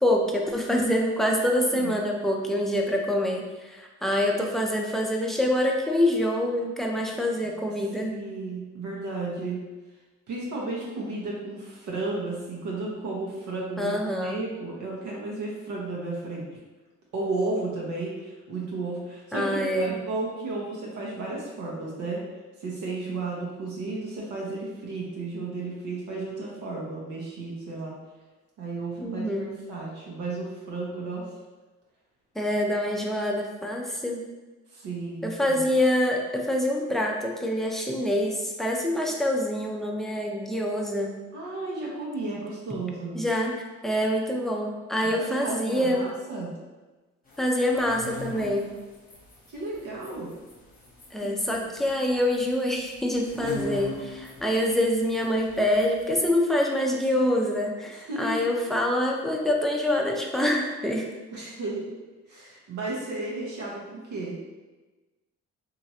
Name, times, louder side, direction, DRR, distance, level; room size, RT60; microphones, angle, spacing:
voice 1, 0.0-8.2 13.8-14.4 19.3-19.9 29.0-29.5 32.4-34.2 35.2-41.1 43.1-43.5 43.8-46.1 47.4-48.7 51.1-61.1, left 1 dB, ahead, 0 dB, 0.4 m, -26 dB
voice 2, 7.8-9.7 10.3-16.5 17.1-22.3 22.6-28.0 28.6-29.3 29.7-31.3 34.7-35.6 41.3-43.2 45.0-46.6 49.5-50.3 51.2-51.7 57.9-58.5 61.3-61.9 62.3-64.4, right 2 dB, 80° right, -4 dB, 0.8 m, -33 dB
sound 1, 47.3-56.3, left 2 dB, 30° left, 0.9 m, -42 dB
2.9 x 2.4 x 2.8 m, 1.2 s
cardioid pair, 90°, 30 cm